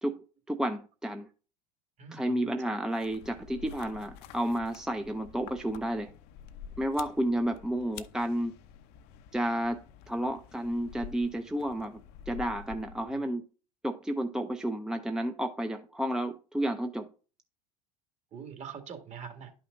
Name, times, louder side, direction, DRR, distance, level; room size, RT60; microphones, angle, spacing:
voice 1, 0.0-1.3 2.1-6.1 6.8-8.6 9.3-12.0 12.3-13.4 13.8-17.1, right 1 dB, 5° right, 0.6 m, -31 dB
voice 2, 2.0-2.8 13.1-13.2 18.3-19.5, right 7 dB, 35° right, 2.1 m, -44 dB
sound 1, 2.9-13.3, left 8 dB, 60° left, 0.7 m, -49 dB
11.5 x 5.7 x 2.6 m
hypercardioid pair, 85°, 19 cm